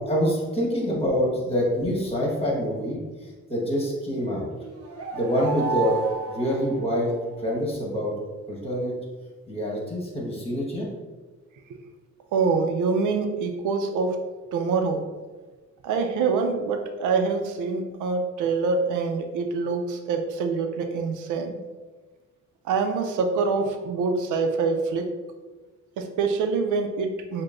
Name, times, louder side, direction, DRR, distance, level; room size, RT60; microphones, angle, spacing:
voice 1, 0.1-4.5 5.1-7.1 7.4-8.1 8.5-8.9 9.5-10.9, equal, 20° left, -3 dB, 1.3 m, -26 dB
sound 1, 4.6-7.5, right 5 dB, 50° right, 0.8 m, -32 dB
voice 2, 12.3-14.2 14.5-15.1 15.8-21.6 22.7-25.1 26.0-27.4, right 4 dB, 80° right, 6 dB, 0.5 m, -25 dB
6.4 x 2.2 x 2.5 m, 1.3 s
cardioid pair, 90°, 30 cm